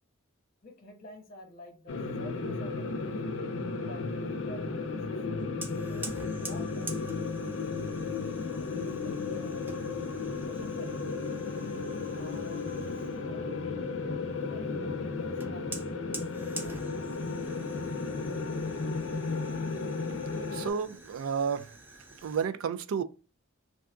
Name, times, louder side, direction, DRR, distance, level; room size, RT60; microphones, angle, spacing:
voice 1, 0.6-3.2 3.8-6.1 6.4-7.5 8.4-9.6 10.4-11.1 12.1-13.5 14.2-17.2, left 1 dB, 45° left, 1.0 m, -50 dB
sound 1, 1.9-20.7, left 4 dB, 65° left, 0.5 m, -34 dB
Fire, 5.6-13.3 15.4-22.5, right 2 dB, 10° right, 0.4 m, -47 dB
voice 2, 20.5-21.7 22.2-23.0, right 6 dB, 85° right, 0.3 m, -31 dB
2.7 x 2.3 x 3.5 m
head